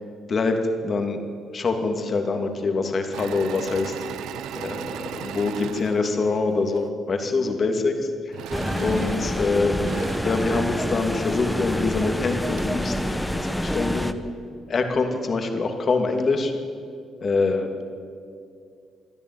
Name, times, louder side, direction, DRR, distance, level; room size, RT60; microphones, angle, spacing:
voice 1, 0.3-1.2 1.5-3.9 4.6-7.9 8.8-9.9 10.2-14.1 14.7-16.5 17.2-17.8, left 3 dB, 45° left, 5 dB, 2.7 m, -25 dB
Engine / Mechanisms, 3.1-6.9 8.3-11.3 11.9-12.0 12.3-12.9, right 10 dB, 85° right, 0.7 m, -38 dB
sound 1, 8.5-14.1, equal, 5° left, 1.1 m, -27 dB
27.0 x 11.0 x 9.5 m, 2.3 s
cardioid pair, 90°, 0 cm